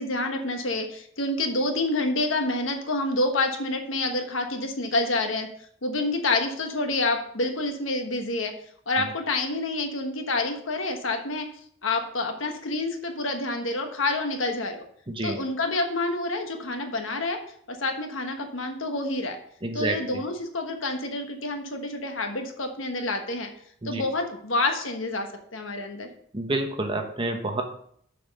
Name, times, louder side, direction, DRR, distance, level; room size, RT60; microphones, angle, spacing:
voice 1, 0.0-5.5 5.8-8.5 8.9-11.5 11.8-14.8 15.2-17.4 17.7-19.4 19.7-23.5 23.8-25.3 25.5-26.1, left 2 dB, 75° left, 5 dB, 1.3 m, -28 dB
voice 2, 15.1-15.4 19.6-20.2 23.8-24.0 26.3-27.6, right 2 dB, 25° right, 4 dB, 1.1 m, -29 dB
6.8 x 6.3 x 5.3 m, 0.64 s
head